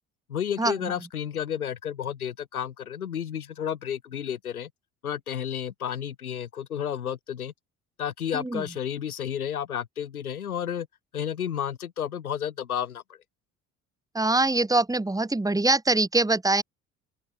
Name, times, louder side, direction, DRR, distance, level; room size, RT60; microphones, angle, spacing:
voice 1, 0.3-4.7 5.0-7.5 8.0-10.9 11.1-13.2, left 9 dB, 85° left, 2.4 m, -31 dB
voice 2, 14.1-16.6, right 2 dB, 10° right, 2.0 m, -23 dB
open air
figure-of-eight pair, 55°, 42 cm